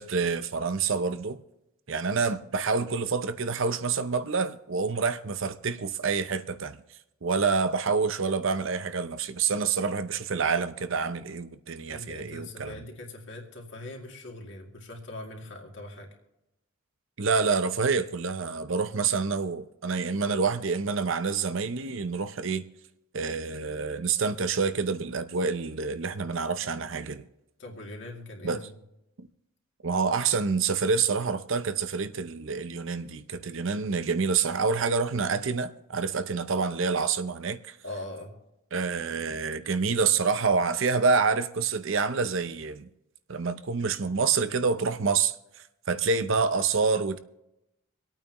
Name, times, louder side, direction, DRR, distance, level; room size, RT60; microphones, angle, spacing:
voice 1, 0.0-1.4 1.9-6.8 7.2-12.8 17.2-22.6 23.1-27.2 28.4-28.7 29.2-29.3 29.8-37.8 38.7-42.9 43.3-45.3 45.9-47.2, right 5 dB, 60° right, 0.6 m, -27 dB
voice 2, 11.9-16.1 27.6-28.8 37.8-38.3, left 2 dB, 55° left, 2.4 m, -41 dB
25.5 x 8.9 x 3.0 m
head